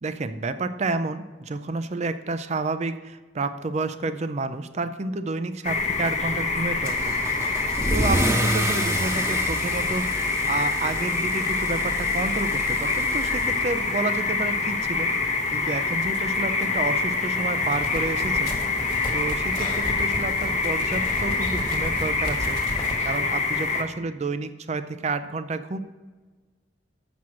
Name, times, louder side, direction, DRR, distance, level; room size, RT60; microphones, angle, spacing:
voice 1, 0.0-7.2 7.9-15.1 15.5-18.5 19.1-25.8, right 3 dB, 35° right, 11 dB, 0.5 m, -30 dB
sound 1, 5.6-23.8, left 4 dB, 40° left, 0.9 m, -26 dB
Car / Engine starting / Accelerating revving vroom, 6.8-14.2, right 1 dB, 15° right, 1.0 m, -30 dB
sound 2, 17.5-23.0, left 1 dB, 25° left, 1.5 m, -34 dB
7.1 x 6.1 x 6.2 m, 1.3 s
head